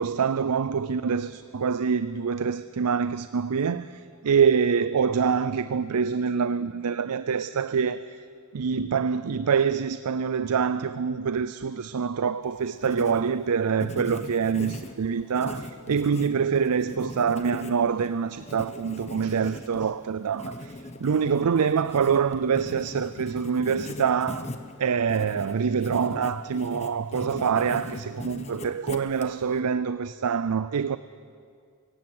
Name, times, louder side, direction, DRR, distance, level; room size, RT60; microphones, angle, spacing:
voice 1, 0.0-8.1 8.5-24.5 24.8-31.0, right 6 dB, 90° right, 0.5 m, -25 dB
Writing, 12.4-29.6, left 1 dB, 30° left, 1.2 m, -40 dB
24.5 x 17.0 x 7.8 m
head